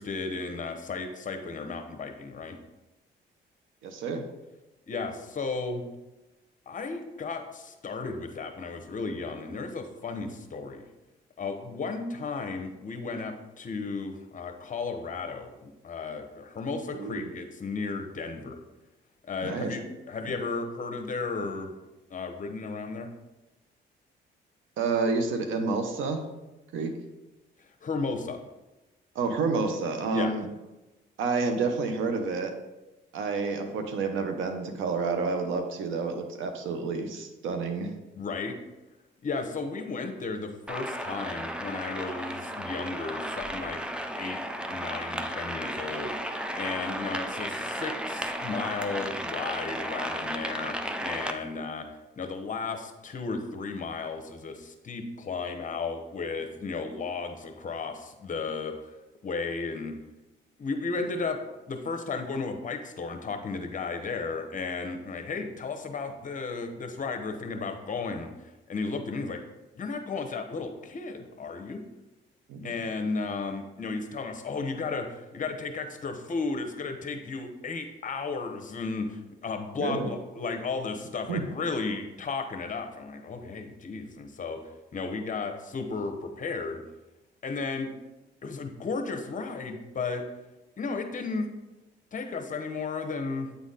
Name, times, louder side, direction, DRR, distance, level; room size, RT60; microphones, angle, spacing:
voice 1, 0.0-2.6 4.9-5.8 6.7-10.9 11.4-18.6 19.3-19.8 20.1-21.7 22.1-23.1 27.8-28.4 30.1-30.3 38.1-38.5 39.2-43.8 44.1-44.4 44.7-46.1 46.6-51.9 52.2-58.9 59.2-59.9 60.6-61.4 61.7-69.4 69.7-71.9 72.6-84.6 84.9-86.8 87.4-87.9 88.4-90.2 90.8-91.5 92.1-93.5, left 4 dB, 40° left, 6 dB, 0.9 m, -34 dB
voice 2, 3.8-4.2 16.9-17.3 19.4-19.7 24.8-26.3 26.7-26.9 29.1-30.5 31.2-32.5 33.1-37.9 72.5-72.7 79.8-80.1 81.3-81.4, right 4 dB, 80° right, 6 dB, 0.9 m, -29 dB
sound 1, 40.7-51.3, equal, 5° right, 0.5 m, -34 dB
8.4 x 4.1 x 3.9 m, 1.0 s
cardioid pair, 90°, 20 cm